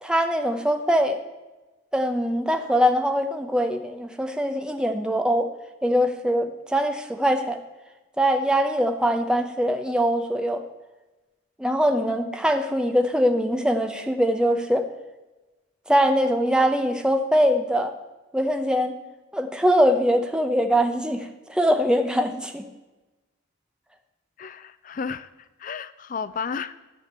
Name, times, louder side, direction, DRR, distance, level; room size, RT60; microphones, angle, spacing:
voice 1, 0.0-1.2 1.9-5.5 5.8-7.6 8.2-10.6 11.6-14.9 15.9-17.9 18.3-18.9 19.3-22.6, equal, 5° right, 6 dB, 0.8 m, -22 dB
voice 2, 24.4-26.7, left 5 dB, 40° left, 13 dB, 0.4 m, -33 dB
12.5 x 5.8 x 8.0 m, 1.1 s
head